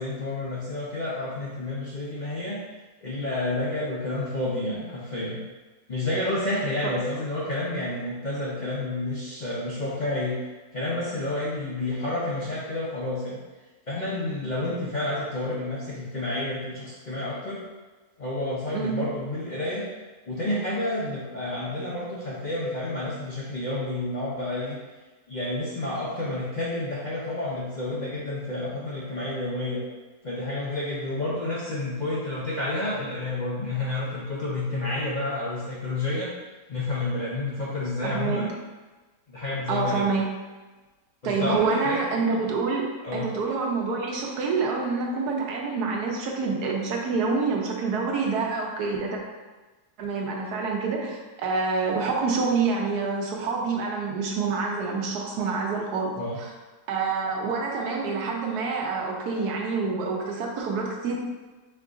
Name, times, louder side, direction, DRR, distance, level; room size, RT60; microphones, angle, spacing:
voice 1, 0.0-2.6 3.0-5.4 5.9-10.4 10.7-13.4 13.9-17.6 18.2-19.8 20.2-24.8 25.3-29.8 30.2-36.3 36.7-38.5 39.3-40.1 41.2-42.0 43.0-43.3 56.2-56.4, left 2 dB, 60° left, -7 dB, 0.4 m, -30 dB
voice 2, 38.0-38.4 39.7-40.3 41.2-42.9 43.1-49.2 50.0-56.5 56.9-61.1, right 4 dB, 85° right, -1 dB, 1.3 m, -27 dB
4.5 x 2.4 x 3.8 m, 1.2 s
omnidirectional pair, 1.6 m